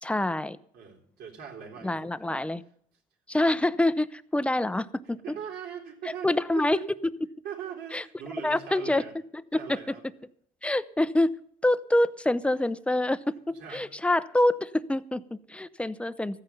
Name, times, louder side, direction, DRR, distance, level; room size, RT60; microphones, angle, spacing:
voice 1, 0.0-0.6 1.8-2.6 3.3-5.2 6.2-6.8 7.9-8.0 8.4-9.0 9.5-9.8 10.6-11.3 11.6-13.3 13.7-16.4, left 1 dB, 5° left, 14 dB, 0.6 m, -26 dB
voice 2, 0.7-2.1 5.2-6.3 6.5-6.9 7.4-9.2 9.6-10.0 13.5-14.0, right 8 dB, 70° right, -1 dB, 3.5 m, -40 dB
14.0 x 9.5 x 7.0 m, 0.64 s
cardioid pair, 110°, 17 cm